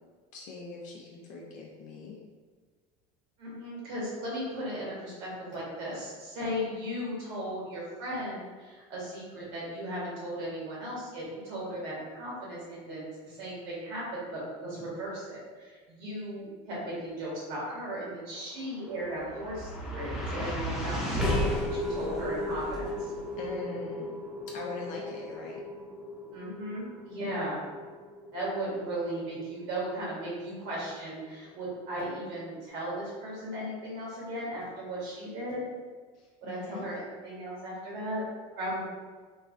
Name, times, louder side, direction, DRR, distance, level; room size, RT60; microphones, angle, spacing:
voice 1, 0.3-2.2 21.8-22.0 23.4-24.1 24.5-25.6 36.1-36.8, left 3 dB, 50° left, -2 dB, 0.5 m, -41 dB
voice 2, 3.4-21.3 21.7-23.1 26.3-27.6 28.3-35.6 36.4-38.2 38.6-38.9, equal, 70° right, -6 dB, 1.4 m, -36 dB
sound 1, 18.6-31.0, left 1 dB, ahead, 0.6 m, -35 dB
3.1 x 2.3 x 2.5 m, 1.4 s
supercardioid pair, 120°, 17 cm